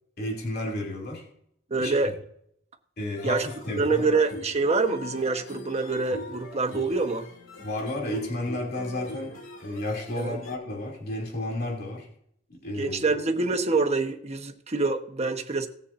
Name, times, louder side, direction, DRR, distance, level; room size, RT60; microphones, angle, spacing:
voice 1, 0.2-1.3 1.8-2.1 3.0-4.1 7.6-12.1 12.5-13.0, left 1 dB, 50° left, -1 dB, 2.8 m, -32 dB
voice 2, 1.7-2.1 3.2-3.5 3.7-7.3 10.2-10.4 12.8-15.7, right 3 dB, 35° right, 5 dB, 1.1 m, -26 dB
sound 1, 3.2-10.6, left 1 dB, 80° left, 2.1 m, -42 dB
18.0 x 7.1 x 2.6 m, 0.70 s
head